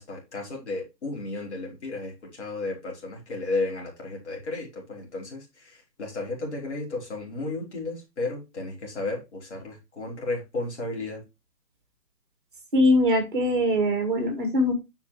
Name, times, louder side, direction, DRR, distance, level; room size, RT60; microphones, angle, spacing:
voice 1, 0.0-11.2, left 2 dB, 40° left, 4.0 m, -33 dB
voice 2, 12.7-14.7, left 1 dB, 30° right, 2.1 m, -22 dB
8.4 x 5.7 x 3.1 m
hypercardioid pair, 175°, 49 cm